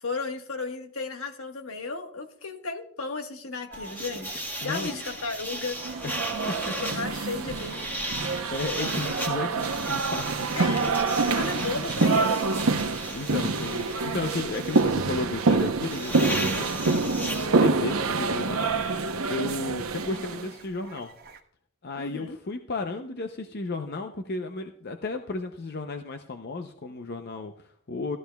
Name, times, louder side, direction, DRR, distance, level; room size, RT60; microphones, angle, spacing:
voice 1, 0.0-5.8 6.8-7.8 10.5-10.9 11.2-12.5 22.0-22.4, left 4 dB, 75° left, 4 dB, 1.4 m, -34 dB
sound 1, 3.7-17.5, equal, 10° left, 1.5 m, -36 dB
sound 2, 3.7-21.4, right 5 dB, 45° right, 1.1 m, -43 dB
voice 2, 4.6-5.0 6.0-7.1 8.5-10.3 13.1-19.0 19.3-21.1 21.8-28.2, left 3 dB, 50° left, 5 dB, 0.6 m, -34 dB
sound 3, 5.8-20.5, right 3 dB, 80° right, 0.8 m, -27 dB
16.5 x 13.0 x 2.3 m, 0.65 s
head